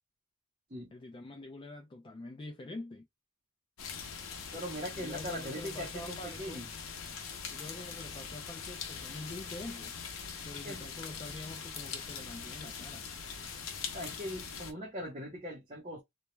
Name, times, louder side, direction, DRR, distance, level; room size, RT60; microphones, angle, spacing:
voice 1, 0.9-3.1 5.0-6.6 7.5-9.9 10.5-13.1, left 2 dB, 25° left, 0.4 m, -45 dB
sound 1, 3.8-14.7, left 6 dB, 90° left, 0.6 m, -42 dB
voice 2, 4.5-6.7 10.6-10.8 13.9-16.0, equal, 30° right, 0.8 m, -40 dB
2.2 x 2.1 x 3.0 m
head